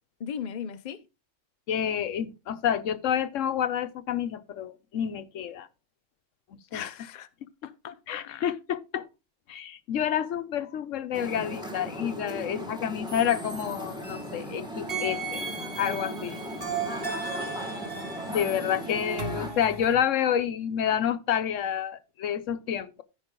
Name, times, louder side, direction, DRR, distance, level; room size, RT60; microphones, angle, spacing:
voice 1, 0.2-1.0 6.7-7.3 7.6-8.5 16.1-16.2, left 8 dB, 45° left, 0.7 m, -38 dB
voice 2, 1.7-5.7 6.5-6.9 8.1-9.1 9.5-15.5 15.8-16.4 16.7-16.9 18.3-23.0, left 9 dB, 85° left, 1.1 m, -29 dB
sound 1, 11.1-19.5, equal, 5° right, 1.6 m, -37 dB
sound 2, 13.1-14.5 14.9-19.9, right 4 dB, 50° right, 2.0 m, -36 dB
14.5 x 5.5 x 3.7 m
omnidirectional pair, 1.3 m